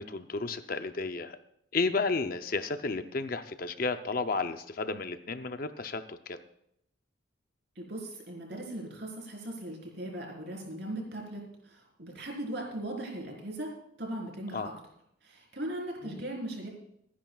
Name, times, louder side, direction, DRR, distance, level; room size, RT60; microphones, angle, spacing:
voice 1, 0.0-1.4 1.7-6.4 14.5-14.7 16.0-16.2, left 3 dB, 45° left, 9 dB, 0.6 m, -32 dB
voice 2, 7.8-13.7 14.0-14.7 15.2-16.7, right 1 dB, 55° right, -1 dB, 4.1 m, -38 dB
25.5 x 10.5 x 2.4 m, 0.75 s
head